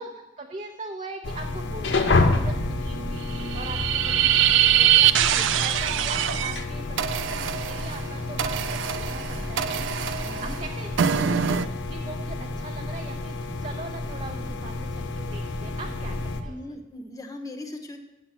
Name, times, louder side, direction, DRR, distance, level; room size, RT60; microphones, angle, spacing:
voice 1, 0.0-16.6, right 2 dB, 35° right, 1 dB, 0.7 m, -41 dB
sound 1, 1.2-16.4, left 2 dB, 70° left, 0.9 m, -30 dB
sound 2, 2.8-4.6, equal, 5° right, 1.0 m, -39 dB
sound 3, 3.3-6.6 7.0-11.7, right 10 dB, 80° right, 0.4 m, -23 dB
voice 2, 10.2-10.6 16.4-18.0, left 1 dB, 20° left, 3 dB, 0.9 m, -39 dB
7.9 x 6.2 x 7.4 m, 1.0 s
head